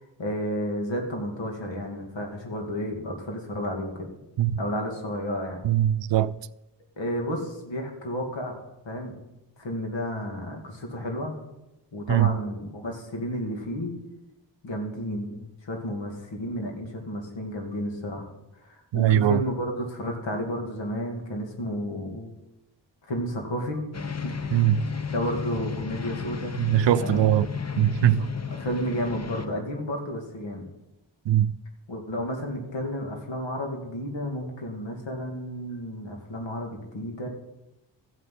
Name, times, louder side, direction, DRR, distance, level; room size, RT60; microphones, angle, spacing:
voice 1, 0.2-4.1 4.6-5.7 7.0-8.5 8.8-9.1 9.6-11.4 11.9-13.9 14.6-18.3 18.6-22.3 23.1-23.8 24.2-24.3 25.1-26.6 27.0-27.3 28.5-30.6 31.9-37.3, equal, 80° left, 2.6 m, -32 dB
voice 2, 5.6-6.3 12.1-12.3 18.9-19.4 24.5-24.8 26.6-27.5 27.8-28.3 31.3-31.5, right 11 dB, 80° right, 0.6 m, -21 dB
sound 1, 23.9-29.5, left 6 dB, 35° left, 1.1 m, -33 dB
14.0 x 5.7 x 8.5 m
cardioid pair, 45°, 44 cm